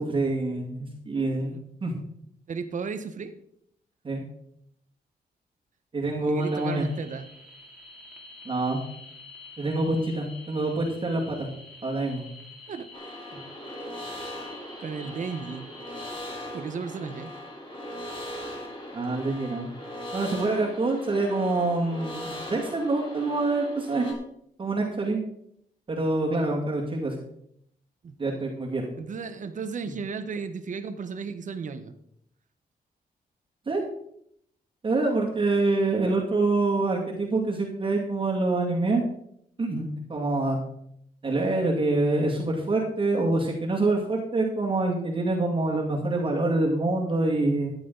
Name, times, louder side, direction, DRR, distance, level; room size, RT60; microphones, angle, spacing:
voice 1, 0.0-1.9 4.0-4.2 5.9-6.9 8.5-8.8 9.6-11.5 11.8-12.2 13.3-13.4 18.9-19.7 20.1-24.2 24.6-25.2 25.9-27.1 28.2-28.9 33.7-33.8 34.8-39.0 39.6-40.6 41.2-47.7, right 2 dB, 35° right, -1 dB, 2.3 m, -26 dB
voice 2, 1.3-1.6 2.5-3.3 6.3-7.3 12.7-12.9 14.8-15.7 16.5-17.3 28.0-28.1 29.0-31.9, right 5 dB, 55° right, 9 dB, 1.1 m, -34 dB
sound 1, 6.4-16.1, left 2 dB, 5° right, 2.8 m, -48 dB
sound 2, 12.9-24.1, equal, 30° left, 3.1 m, -39 dB
14.0 x 10.0 x 4.0 m, 0.72 s
wide cardioid pair, 145°, 16 cm